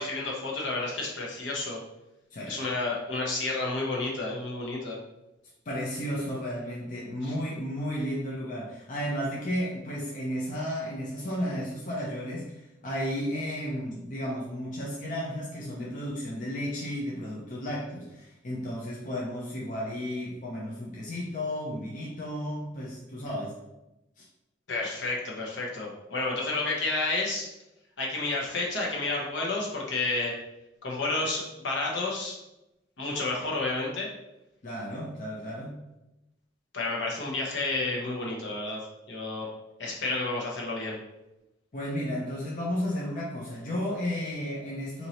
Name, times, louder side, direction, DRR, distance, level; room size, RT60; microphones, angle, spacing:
voice 1, 0.0-1.8 2.5-5.0 24.7-27.5 28.0-30.3 30.8-32.3 33.0-34.1 36.7-38.8 39.1-39.5 39.8-41.0, left 2 dB, 70° left, -3 dB, 1.0 m, -30 dB
voice 2, 5.7-23.6 24.2-24.3 34.6-35.8 41.7-45.1, equal, 40° left, -4 dB, 0.6 m, -33 dB
4.5 x 2.8 x 2.8 m, 0.94 s
head